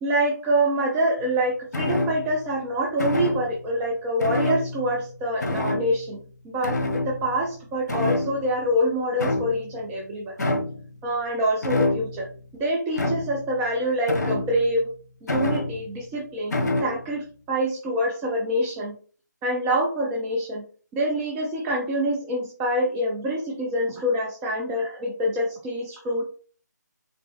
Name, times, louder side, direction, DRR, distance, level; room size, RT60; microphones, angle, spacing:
voice 1, 0.0-6.2 6.5-6.8 7.1-10.3 11.0-12.3 12.6-14.9 15.2-19.0 19.4-20.6 20.9-26.2, equal, 10° right, -2 dB, 0.3 m, -26 dB
sound 1, 1.7-2.4 3.0-3.6 4.2-5.1 5.4-6.1 6.6-7.5 7.9-8.7 9.2-9.8 10.4-10.9 11.6-12.3 12.9-13.5 14.1-14.8 15.3-16.0 16.5-17.0, left 2 dB, 60° left, 1.1 m, -27 dB
4.5 x 2.9 x 3.4 m, 0.42 s
figure-of-eight pair, 150°, 10 cm